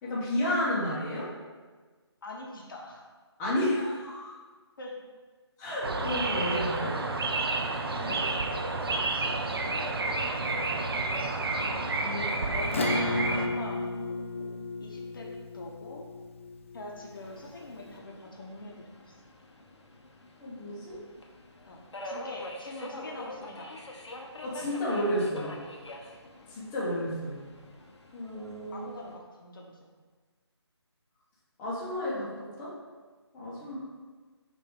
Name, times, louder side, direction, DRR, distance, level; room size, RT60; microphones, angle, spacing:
voice 1, 0.0-1.3 3.4-4.3 5.6-7.0 8.0-8.2 12.0-12.5 20.4-21.0 24.4-25.6 26.5-27.4 28.1-28.9 31.6-32.7 33.3-33.8, left 1 dB, 10° left, -9 dB, 0.7 m, -32 dB
voice 2, 2.2-3.1 4.8-5.0 8.1-9.1 10.0-10.2 12.5-16.1 16.7-19.1 21.7-23.7 28.7-29.8 33.6-33.8, left 2 dB, 50° left, -1 dB, 0.8 m, -44 dB
sound 1, 5.8-13.5, right 3 dB, 60° right, 0.5 m, -30 dB
Acoustic guitar / Strum, 12.7-17.6, left 2 dB, 30° left, 0.3 m, -34 dB
Subway metro underground, 17.1-29.2, left 1 dB, 80° left, 0.8 m, -45 dB
5.6 x 2.6 x 3.6 m, 1.4 s
figure-of-eight pair, 155°, 15 cm